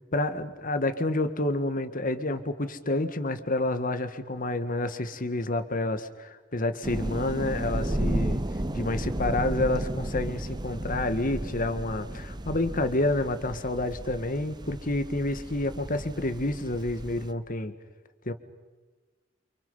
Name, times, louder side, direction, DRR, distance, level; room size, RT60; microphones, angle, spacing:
voice 1, 0.0-8.4 8.7-17.7 18.3-18.4, left 2 dB, 45° left, 9 dB, 1.7 m, -29 dB
sound 1, 6.8-17.3, right 1 dB, 20° right, 0.9 m, -33 dB
30.0 x 26.5 x 5.6 m, 1.3 s
head